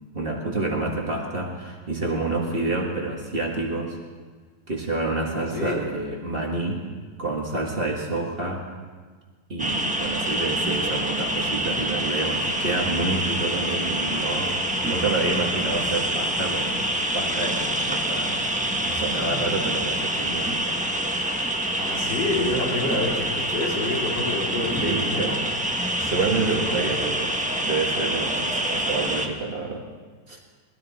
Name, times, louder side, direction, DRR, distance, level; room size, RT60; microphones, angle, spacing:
voice 1, 0.1-4.0 4.7-6.9 7.2-8.6 9.5-14.6 14.9-16.9 17.1-18.4 18.9-20.8 24.6-25.4 26.0-27.4 27.6-29.8 30.3-30.4, right 3 dB, 30° right, -1 dB, 1.7 m, -28 dB
voice 2, 5.3-5.8 21.8-25.3 26.4-26.9, left 2 dB, 80° left, -2 dB, 3.2 m, -28 dB
sound 1, 9.6-29.3, right 1 dB, 5° right, 0.6 m, -26 dB
20.0 x 13.0 x 4.2 m, 1.5 s
omnidirectional pair, 1.9 m